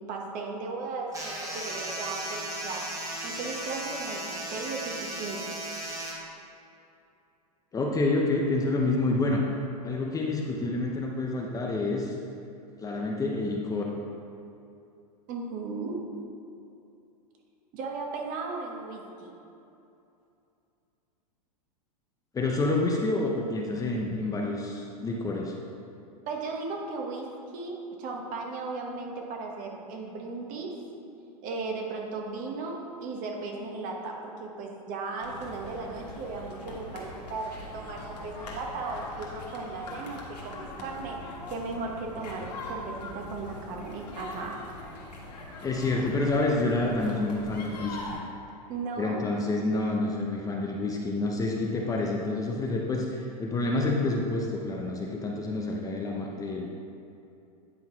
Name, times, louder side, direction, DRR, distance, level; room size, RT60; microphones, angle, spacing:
voice 1, 0.0-2.9 3.2-5.6 15.3-16.0 17.7-19.3 26.3-30.7 31.4-44.6 48.7-49.2, right 3 dB, 40° right, 1 dB, 1.3 m, -36 dB
sound 1, 1.1-6.1, right 1 dB, 15° right, 1.4 m, -36 dB
voice 2, 7.7-9.4 9.8-12.2 12.8-13.8 22.3-25.6 45.6-48.2 49.0-56.7, left 2 dB, 15° left, 0 dB, 0.7 m, -28 dB
sound 2, 35.2-48.2, left 2 dB, 85° left, 1.8 m, -42 dB
9.7 x 3.9 x 4.6 m, 2.7 s
hypercardioid pair, 115°, 20 cm